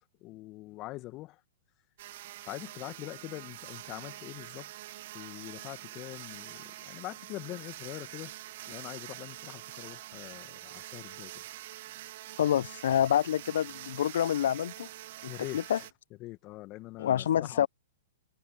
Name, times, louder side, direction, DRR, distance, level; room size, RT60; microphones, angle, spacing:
voice 1, 0.2-1.4 2.4-4.7 5.1-8.3 8.7-11.3 15.3-15.9 16.2-17.7, left 18 dB, 35° left, 2.0 m, -43 dB
sound 1, 2.0-15.9, right 15 dB, 55° right, 1.5 m, -45 dB
voice 2, 12.4-14.9 15.2-15.8 17.0-17.7, left 10 dB, 65° left, 0.9 m, -27 dB
figure-of-eight pair, 110°, 0 cm